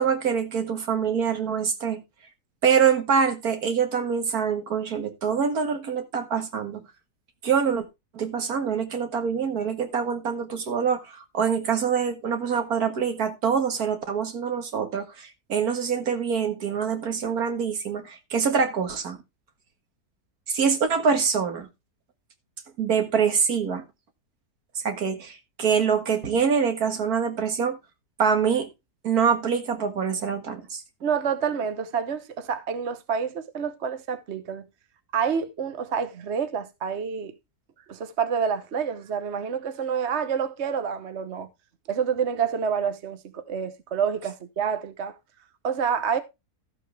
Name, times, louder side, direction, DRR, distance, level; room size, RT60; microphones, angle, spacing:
voice 1, 0.0-2.0 2.6-6.8 7.4-7.9 8.1-19.2 20.5-21.7 22.8-23.8 24.8-27.8 28.2-28.7 29.0-30.8, right 6 dB, 65° right, 2.0 m, -25 dB
voice 2, 31.0-34.6 35.1-37.3 37.9-41.5 41.9-45.2 45.6-46.2, right 7 dB, 50° right, 1.2 m, -28 dB
13.5 x 7.7 x 3.4 m
omnidirectional pair, 1.7 m